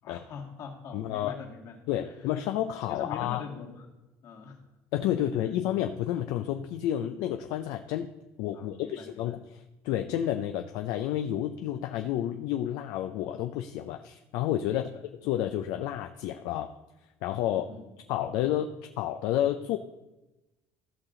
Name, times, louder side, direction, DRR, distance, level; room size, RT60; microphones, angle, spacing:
voice 1, 0.0-2.2 2.9-3.9 4.2-4.6 8.5-9.3 14.8-14.9 17.4-17.9, left 5 dB, 55° left, 0 dB, 2.1 m, -43 dB
voice 2, 0.9-1.4 1.9-3.4 4.9-8.1 8.4-14.9 15.2-16.7 17.2-17.7 18.1-18.7 19.0-19.8, left 11 dB, 75° left, 6 dB, 0.5 m, -30 dB
15.5 x 5.8 x 3.9 m, 1.0 s
cardioid pair, 140°, 7 cm